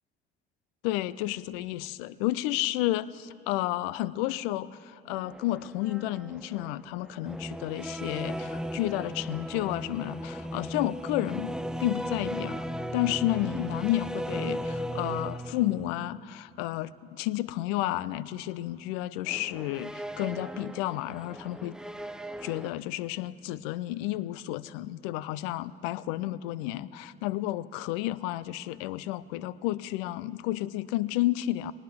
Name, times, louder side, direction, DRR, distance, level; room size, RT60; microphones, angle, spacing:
voice 1, 0.8-12.7 12.9-21.7 22.4-31.7, left 15 dB, 65° left, 19 dB, 0.5 m, -31 dB
sound 1, 5.1-16.1 19.2-22.7, equal, ahead, 0.5 m, -37 dB
20.5 x 19.0 x 3.5 m, 2.6 s
figure-of-eight pair, 55°, 32 cm